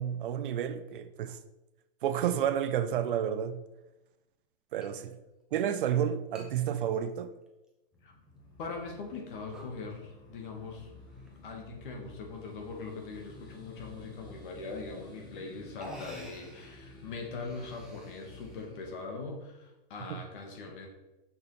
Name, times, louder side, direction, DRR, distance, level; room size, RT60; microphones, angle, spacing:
voice 1, 0.0-1.4 2.0-3.6 4.7-5.1 5.5-7.3 20.1-20.2, right 9 dB, 60° right, 0.7 m, -30 dB
sound 1, 4.8-4.9 5.3-5.4 6.3-6.5 6.9-7.7 8.2-8.3 8.9-9.2 9.5-9.8 11.0-11.5 12.3-12.7 14.6-14.7 15.4-15.5 15.8-16.8 17.3-18.7, right 1 dB, ahead, 0.8 m, -50 dB
sound 2, 7.9-18.9, left 2 dB, 15° left, 1.3 m, -52 dB
voice 2, 8.6-10.9 11.4-20.9, left 4 dB, 55° left, 2.0 m, -41 dB
6.5 x 6.0 x 4.2 m
hypercardioid pair, 150°, 30 cm